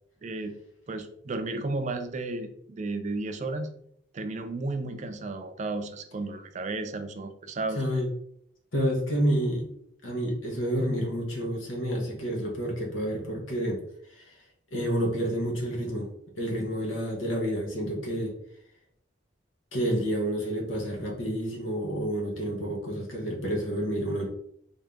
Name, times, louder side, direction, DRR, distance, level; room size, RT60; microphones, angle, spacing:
voice 1, 0.2-0.5 0.9-3.7 4.1-7.8, right 2 dB, 40° right, 7 dB, 0.4 m, -33 dB
voice 2, 7.7-8.1 8.7-9.7 10.0-13.8 14.2-14.4 14.7-16.1 16.4-18.3 19.7-24.3, equal, 90° left, 0 dB, 1.1 m, -29 dB
3.6 x 2.6 x 3.5 m, 0.70 s
head